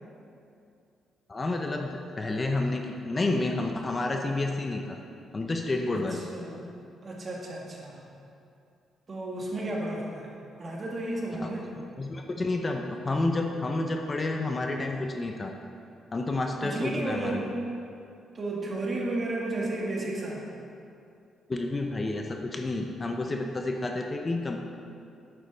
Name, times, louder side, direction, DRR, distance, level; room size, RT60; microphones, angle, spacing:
voice 1, 1.3-1.9 2.2-5.0 5.3-6.3 11.4-11.5 12.0-15.5 16.1-17.4 21.5-24.6, left 2 dB, 30° left, 3 dB, 0.7 m, -30 dB
voice 2, 5.9-6.7 7.0-8.0 9.1-10.3 10.6-11.7 16.6-17.5 18.3-20.4, right 2 dB, 35° right, -3 dB, 2.0 m, -33 dB
9.6 x 7.9 x 3.9 m, 2.5 s
cardioid pair, 90°, 0 cm